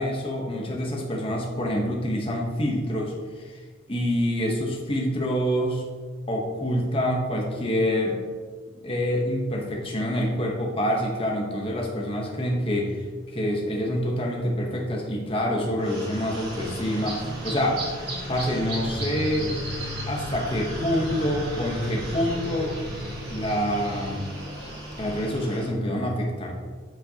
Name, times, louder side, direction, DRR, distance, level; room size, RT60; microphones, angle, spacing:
voice 1, 0.0-3.6 3.9-5.8 6.3-8.2 8.8-13.0 13.3-17.8 18.3-19.6 20.1-22.7 23.3-24.3 25.0-26.5, equal, 25° left, -1 dB, 1.0 m, -26 dB
sound 1, 15.8-25.7, equal, 50° right, 2.1 m, -34 dB
9.1 x 5.2 x 2.8 m, 1.5 s
head